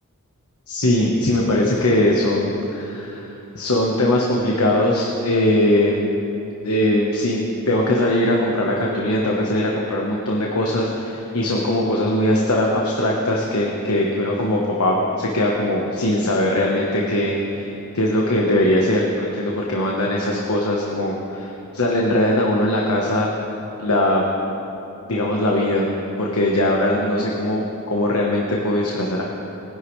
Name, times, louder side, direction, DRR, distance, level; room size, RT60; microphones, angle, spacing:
voice 1, 0.7-6.0 6.6-23.3 23.8-24.2 25.1-25.9 26.2-29.2, left 1 dB, 80° left, -2 dB, 1.2 m, -20 dB
20.5 x 10.5 x 3.3 m, 3.0 s
head